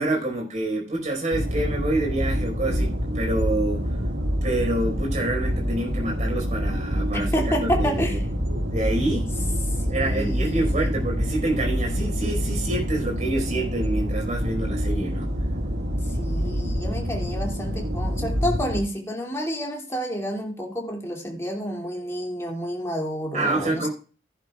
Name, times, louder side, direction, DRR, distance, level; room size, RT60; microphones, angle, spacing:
voice 1, 0.0-3.9 4.4-8.2 8.7-9.3 9.9-15.3 23.3-23.9, right 2 dB, 40° right, 0 dB, 4.9 m, -27 dB
sound 1, 1.3-18.8, equal, 80° right, 2.0 m, -26 dB
voice 2, 7.1-8.2 9.8-11.0 16.0-23.9, equal, 15° left, 0 dB, 2.6 m, -29 dB
15.0 x 11.0 x 2.4 m, 0.37 s
head